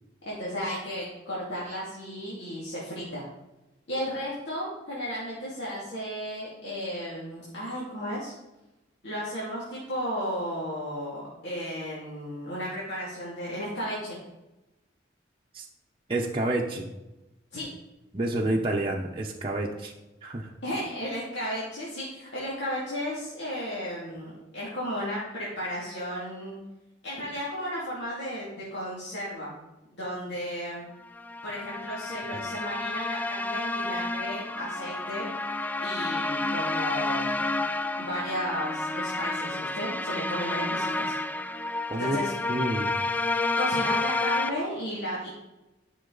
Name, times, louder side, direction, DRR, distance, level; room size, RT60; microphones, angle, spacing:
voice 1, 0.3-3.3 3.9-8.3 9.0-14.2 17.5-17.7 20.6-26.6 27.0-29.5 30.0-30.8 31.4-35.3 35.8-37.4 38.0-41.1 42.0-42.3 43.6-45.3, equal, 70° left, -7 dB, 2.4 m, -34 dB
voice 2, 16.1-16.9 18.1-19.9 20.2-20.5 41.9-42.2 42.5-42.9, right 1 dB, 30° right, -2 dB, 0.8 m, -29 dB
sound 1, 31.1-44.5, left 2 dB, 10° left, 0.3 m, -30 dB
11.0 x 6.3 x 3.9 m, 0.99 s
head